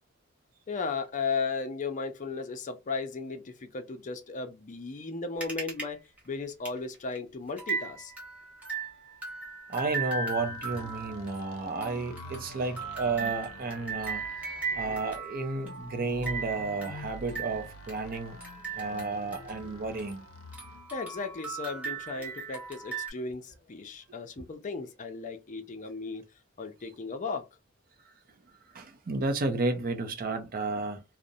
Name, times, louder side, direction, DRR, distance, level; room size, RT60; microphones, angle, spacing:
voice 1, 0.7-6.0 6.2-8.1 20.9-26.3 26.6-27.5, left 4 dB, 35° left, 0.5 m, -35 dB
sound 1, 5.4-5.9 6.2-6.3 6.6-6.8 7.1-7.2 7.6-20.3 20.5-23.1, right 4 dB, 5° right, 0.9 m, -38 dB
voice 2, 9.7-14.2 14.8-18.4 18.7-20.3 28.7-31.0, right 3 dB, 45° right, 0.5 m, -32 dB
sound 2, 10.1-20.9, left 1 dB, 85° left, 0.5 m, -47 dB
2.5 x 2.0 x 2.6 m
head